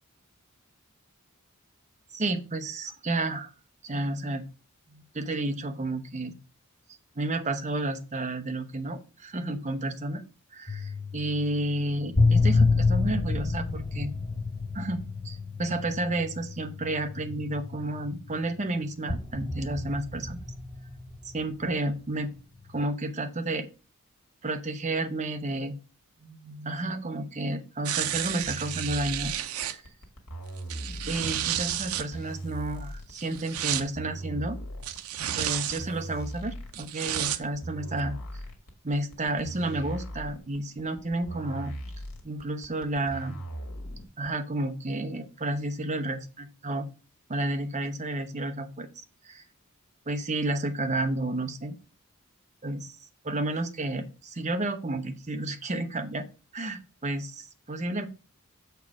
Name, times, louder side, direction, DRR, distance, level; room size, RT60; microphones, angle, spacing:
voice 1, 2.1-3.5 3.8-4.4 5.1-6.3 7.1-10.2 10.5-14.1 14.7-20.4 21.2-22.3 22.7-23.7 24.4-25.7 26.2-29.8 31.1-34.6 35.4-38.2 38.8-41.7 42.2-43.4 44.2-46.2 46.6-46.9 47.3-49.4 50.1-51.8 52.6-52.9 53.2-56.3 56.5-58.1, right 2 dB, 35° right, 8 dB, 0.8 m, -31 dB
sound 1, 10.7-18.6 19.1-21.8 22.6-22.8, left 3 dB, 20° left, 0.6 m, -29 dB
sound 2, 27.8-29.7 30.6-32.0 33.1-33.8 34.8-35.8 36.7-37.4 38.0-38.1, right 11 dB, 85° right, 0.6 m, -31 dB
sound 3, 28.3-44.3, right 1 dB, 80° left, 1.8 m, -39 dB
7.2 x 4.6 x 4.7 m, 0.33 s
head